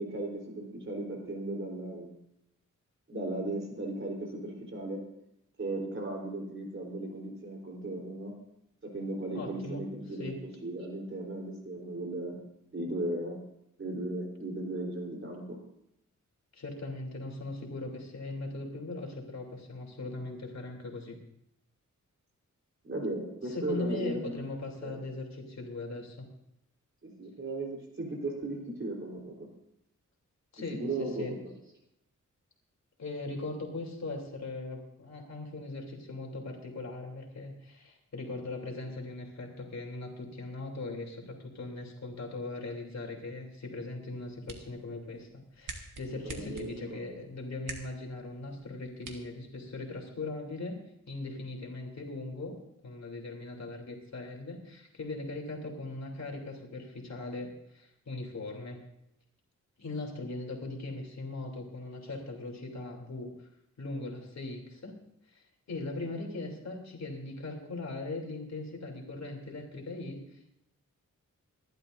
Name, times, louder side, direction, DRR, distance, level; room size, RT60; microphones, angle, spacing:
voice 1, 0.0-2.1 3.1-5.0 5.6-8.4 8.8-10.3 10.6-12.4 12.7-13.4 13.8-15.6 22.8-24.5 24.8-25.0 27.0-29.5 30.8-31.2 46.2-47.2, right 2 dB, 40° right, -1 dB, 3.8 m, -36 dB
voice 2, 9.3-9.8 10.2-10.4 16.5-21.2 23.5-26.3 30.5-31.4 33.0-45.3 45.5-50.8 51.1-52.6 52.8-58.8 59.8-63.3 63.8-64.9 65.3-70.5, left 2 dB, 60° left, 1 dB, 3.1 m, -39 dB
sound 1, 44.0-50.1, right 3 dB, 80° right, 2.0 m, -48 dB
27.0 x 12.0 x 2.6 m, 0.80 s
wide cardioid pair, 145°, 31 cm